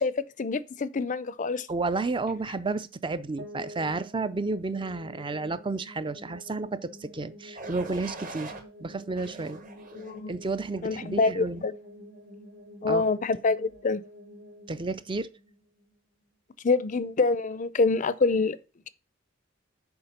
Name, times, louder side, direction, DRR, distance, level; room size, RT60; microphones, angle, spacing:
voice 1, 0.0-1.7 9.9-10.3 10.8-11.7 12.8-14.0 16.6-18.6, left 3 dB, 40° left, 0.5 m, -26 dB
voice 2, 1.7-8.5 8.8-9.6 10.3-11.6 12.9-13.1 14.7-15.3, right 3 dB, 25° right, 0.5 m, -31 dB
sound 1, 3.4-16.3, equal, 85° right, 3.0 m, -48 dB
sound 2, 7.6-8.6 9.2-10.2 10.8-11.2, right 2 dB, 45° right, 1.5 m, -42 dB
7.1 x 4.7 x 6.6 m
head